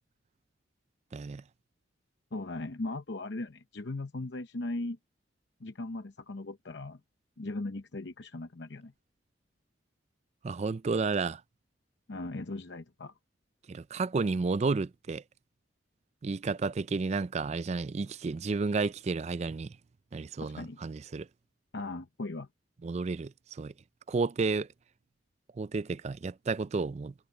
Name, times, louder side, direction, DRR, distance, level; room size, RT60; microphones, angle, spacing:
voice 1, 1.1-1.4 10.4-11.4 13.7-15.2 16.2-19.8 20.1-21.3 22.8-23.7 24.1-24.7 25.6-27.1, right 4 dB, 35° right, 0.3 m, -31 dB
voice 2, 2.3-5.0 5.6-7.0 7.4-8.9 12.1-13.1 20.4-20.8 21.7-22.5, left 2 dB, 60° left, 0.8 m, -38 dB
head